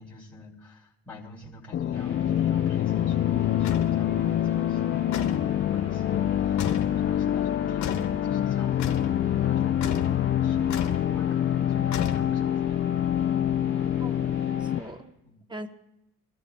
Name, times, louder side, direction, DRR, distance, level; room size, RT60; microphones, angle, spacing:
voice 1, 0.0-5.0 5.7-13.0 15.2-15.4, left 2 dB, 5° left, -7 dB, 2.4 m, -46 dB
sound 1, 1.7-14.8, left 11 dB, 40° left, 0.4 m, -25 dB
sound 2, 1.9-14.9, right 2 dB, 80° right, 4.7 m, -46 dB
sound 3, 3.6-4.0 5.1-5.5 6.6-7.0 7.8-8.2 8.8-9.1 9.8-10.2 10.7-11.1 11.9-12.6, left 8 dB, 70° left, 1.0 m, -32 dB
voice 2, 14.0-15.1 15.5-15.7, right 1 dB, 15° right, 8 dB, 0.8 m, -41 dB
21.5 x 13.0 x 2.2 m, 0.84 s
cardioid pair, 90°, 30 cm